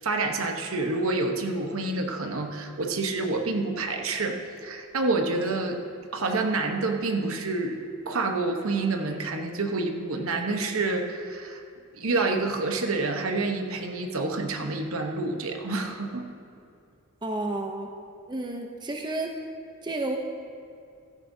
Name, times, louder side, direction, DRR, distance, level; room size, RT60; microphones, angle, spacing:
voice 1, 0.0-5.8 6.1-7.8 8.0-11.6 11.9-16.3, right 3 dB, 65° right, 4 dB, 1.0 m, -28 dB
voice 2, 17.2-17.9 18.3-19.3 19.8-20.2, right 2 dB, 20° right, 2 dB, 0.7 m, -31 dB
15.5 x 13.5 x 2.7 m, 2.5 s
head